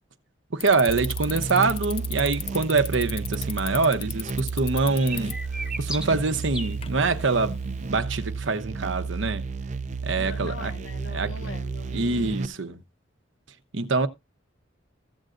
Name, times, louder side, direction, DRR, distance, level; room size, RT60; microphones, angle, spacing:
voice 1, 0.5-5.3 5.8-9.5 10.0-10.7 11.1-11.3 11.9-12.8 13.7-14.1, right 4 dB, 80° right, 0.9 m, -25 dB
Bicycle, 0.6-7.9, left 9 dB, 30° left, 0.6 m, -39 dB
sound 1, 0.9-12.5, right 4 dB, 40° right, 0.4 m, -32 dB
sound 2, 5.0-6.8, right 1 dB, 5° right, 0.8 m, -35 dB
voice 2, 10.2-12.6, left 3 dB, 85° left, 0.9 m, -41 dB
15.0 x 7.8 x 2.5 m
head